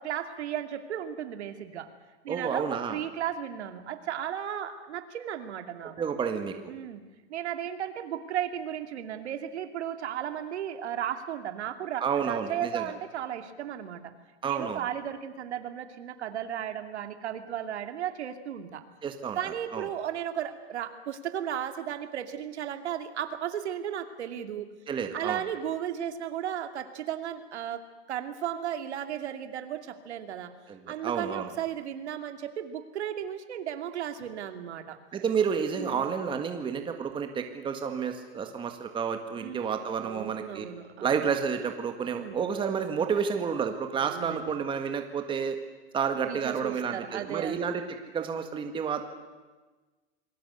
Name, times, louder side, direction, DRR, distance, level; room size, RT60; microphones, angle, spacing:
voice 1, 0.0-1.9 2.2-6.0 6.7-7.0 7.3-14.1 14.4-18.8 19.3-24.7 25.1-27.8 28.1-30.5 30.9-35.0 35.8-36.1 39.4-41.2 42.1-42.5 44.0-44.6 46.3-47.6, right 10 dB, 80° right, 7 dB, 2.7 m, -35 dB
voice 2, 2.3-3.0 6.0-6.7 12.0-12.9 14.4-14.8 19.0-19.9 24.9-25.4 30.7-31.5 35.1-40.7 41.0-45.6 45.9-49.0, right 6 dB, 15° right, 6 dB, 1.7 m, -30 dB
27.5 x 20.5 x 8.1 m, 1.3 s
supercardioid pair, 155°, 33 cm